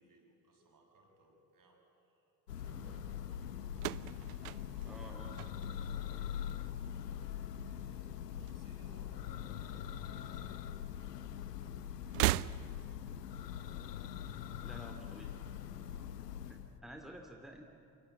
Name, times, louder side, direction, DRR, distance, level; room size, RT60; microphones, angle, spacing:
voice 1, 0.0-4.3 5.7-6.8 7.6-11.6 12.8-14.3 14.6-15.6 15.9-16.2 16.6-16.8, right 1 dB, 45° right, 2 dB, 7.1 m, -66 dB
Church bell, 2.5-16.8, left 9 dB, 85° left, 0.9 m, -43 dB
sound 1, 3.7-6.1 6.4-7.0 8.0-9.1 9.3-9.4 10.6-10.7 12.0-13.1, right 19 dB, 70° right, 0.6 m, -37 dB
voice 2, 4.9-5.4 14.6-15.3 16.5-17.6, equal, ahead, 3 dB, 2.4 m, -51 dB
28.0 x 25.5 x 8.4 m, 2.6 s
figure-of-eight pair, 55°, 47 cm